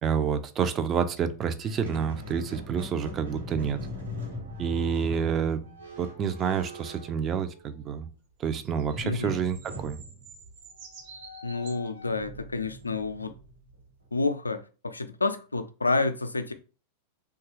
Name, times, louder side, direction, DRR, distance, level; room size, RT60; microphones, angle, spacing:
voice 1, 0.0-3.8 4.6-5.6 6.0-8.1 8.4-10.0, right 7 dB, 25° right, 0.4 m, -28 dB
Squeak, 1.6-7.9 8.9-14.1, left 1 dB, 85° right, 1.2 m, -42 dB
sound 1, 8.5-11.9 12.8-12.9, right 5 dB, 45° right, 0.8 m, -49 dB
voice 2, 9.0-9.4 11.4-13.3 14.1-16.5, left 3 dB, 80° left, 0.3 m, -29 dB
2.9 x 2.3 x 2.9 m
figure-of-eight pair, 90°, 0 cm